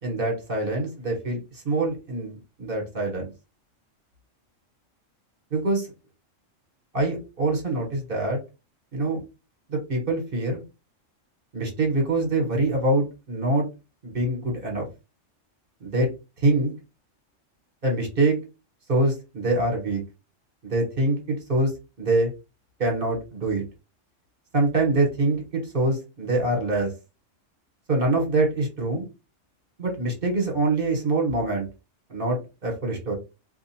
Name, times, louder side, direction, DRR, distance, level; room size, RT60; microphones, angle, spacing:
voice 1, 0.0-1.4 1.6-3.3 5.5-5.9 6.9-8.4 8.9-9.2 9.7-10.6 11.5-13.7 14.0-14.8 15.8-16.1 16.4-16.7 17.8-18.4 18.9-20.0 20.6-21.7 22.0-22.3 22.8-23.6 24.5-26.9 27.9-29.0 29.8-31.7 32.1-33.1, right 2 dB, 45° right, 1 dB, 1.4 m, -24 dB
2.7 x 2.4 x 4.2 m, 0.28 s
omnidirectional pair, 1.3 m